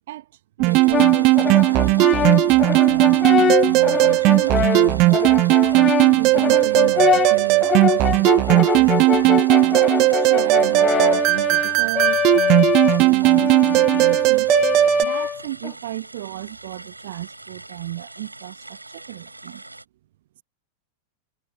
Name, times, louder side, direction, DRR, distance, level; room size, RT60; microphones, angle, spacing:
sound 1, 0.6-15.0, right 22 dB, 40° right, 0.5 m, -17 dB
voice 1, 0.6-5.2 5.7-9.5 10.1-14.6 15.0-19.6, right 14 dB, 55° right, 1.1 m, -34 dB
sound 2, 0.6-19.8, right 2 dB, 85° right, 6.5 m, -42 dB
Brass instrument, 0.9-15.7, left 8 dB, 25° left, 0.7 m, -24 dB
figure-of-eight pair, 90°, 0 cm